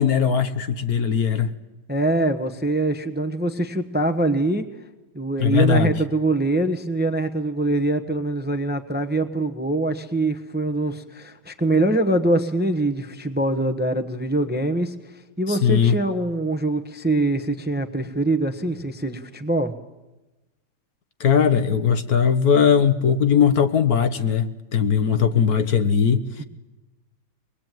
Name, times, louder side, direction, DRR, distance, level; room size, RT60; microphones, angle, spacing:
voice 1, 0.0-1.5 5.4-5.9 15.5-16.0 21.2-26.4, left 7 dB, 60° left, 10 dB, 1.5 m, -19 dB
voice 2, 1.9-4.7 5.1-14.9 15.4-19.7 26.4-26.5, right 2 dB, 5° right, 8 dB, 1.0 m, -23 dB
24.5 x 20.0 x 9.3 m, 1.1 s
omnidirectional pair, 1.9 m